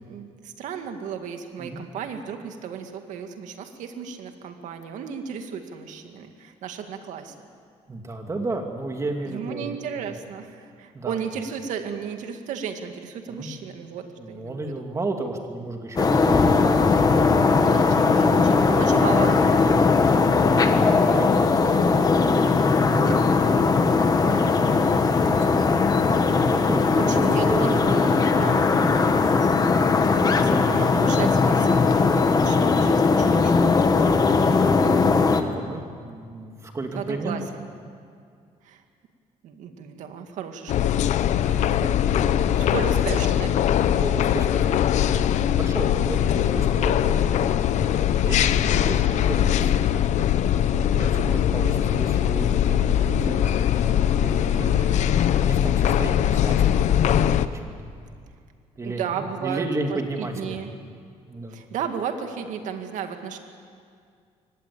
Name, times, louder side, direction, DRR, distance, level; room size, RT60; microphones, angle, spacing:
voice 1, 0.1-7.3 9.3-14.9 17.6-19.6 24.2-24.7 27.1-29.3 30.4-31.8 32.1-34.0 36.9-37.4 38.6-38.8 39.4-41.0 41.4-42.0 42.6-44.0 45.6-45.7 48.7-49.1 54.6-55.2 58.8-60.7 61.5-63.4, right 7 dB, 85° right, 6 dB, 2.1 m, -34 dB
voice 2, 7.9-9.9 10.9-11.2 13.3-13.5 14.2-16.9 18.0-18.1 20.1-21.9 22.4-24.5 25.3-25.8 26.4-27.6 34.7-37.4 41.4-41.7 42.2-42.9 43.9-44.9 45.1-50.0 50.5-54.7 55.4-57.8 58.8-60.6 61.3-61.6, right 2 dB, 25° right, 3 dB, 2.7 m, -34 dB
sound 1, 16.0-35.4, left 4 dB, 30° left, 1.5 m, -19 dB
sound 2, 40.7-57.5, left 10 dB, 70° left, 0.9 m, -21 dB
24.5 x 18.5 x 8.6 m, 2.2 s
cardioid pair, 135°, 13 cm